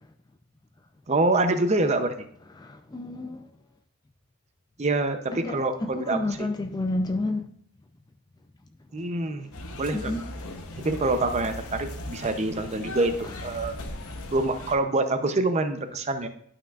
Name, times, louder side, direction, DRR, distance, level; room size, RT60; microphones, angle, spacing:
voice 1, 1.1-2.1 4.8-6.5 8.9-9.5 9.7-10.1 10.8-13.8 14.3-16.3, right 2 dB, 30° right, 0.6 m, -26 dB
voice 2, 2.6-3.5 5.3-7.5 9.4-9.5 9.9-10.3 13.2-13.3, left 2 dB, 20° left, 0.4 m, -30 dB
sound 1, 9.5-14.7, left 1 dB, 80° left, 0.9 m, -38 dB
11.5 x 5.7 x 2.4 m
head